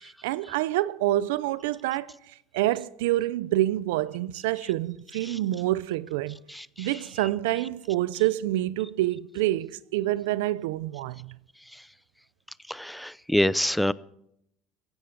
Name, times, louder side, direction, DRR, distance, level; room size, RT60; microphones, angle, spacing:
voice 1, 0.0-2.1 2.5-6.4 6.8-11.4, right 15 dB, 85° right, 0.5 m, -27 dB
voice 2, 6.5-6.9 12.7-13.9, equal, 5° left, 0.6 m, -26 dB
16.0 x 15.0 x 5.2 m
supercardioid pair, 100°, 0 cm